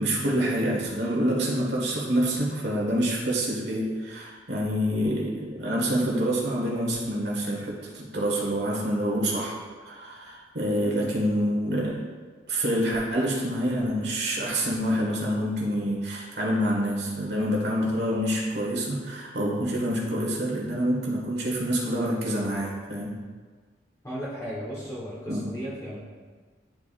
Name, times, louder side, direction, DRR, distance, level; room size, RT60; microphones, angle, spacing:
voice 1, 0.0-12.1 12.5-23.2 25.3-25.6, equal, 65° right, -4 dB, 1.7 m, -27 dB
voice 2, 10.8-11.1 24.0-26.0, equal, 20° left, -8 dB, 1.2 m, -35 dB
10.5 x 4.8 x 2.5 m, 1.5 s
head